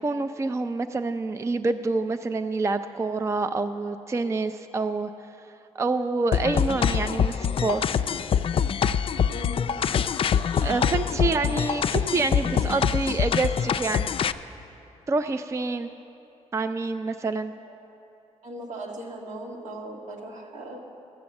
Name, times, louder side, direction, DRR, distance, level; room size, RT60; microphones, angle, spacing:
voice 1, 0.0-5.1 5.7-8.0 10.6-14.1 15.1-15.9 16.5-17.5, right 3 dB, 25° right, 10 dB, 0.4 m, -27 dB
sound 1, 6.3-14.3, left 7 dB, 50° left, 0.4 m, -25 dB
voice 2, 9.3-9.8 11.2-11.4 11.8-12.0 12.5-12.6 17.6-17.7 18.4-20.8, right 1 dB, 75° right, -1 dB, 1.9 m, -38 dB
13.5 x 7.6 x 7.1 m, 2.8 s
cardioid pair, 75°, 12 cm